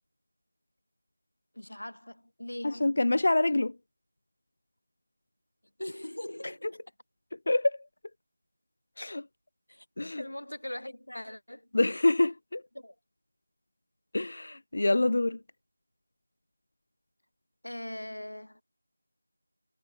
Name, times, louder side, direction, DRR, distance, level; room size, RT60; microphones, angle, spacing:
voice 1, 1.5-2.8 5.8-6.8 9.7-9.9 10.2-12.0 12.7-12.9 17.6-18.6, left 1 dB, 80° left, 2.4 m, -41 dB
voice 2, 2.6-3.7 7.5-7.8 9.0-9.2 10.0-10.2 11.7-12.6 14.1-15.4, left 2 dB, 55° left, 0.4 m, -26 dB
figure-of-eight pair, 170°, 0 cm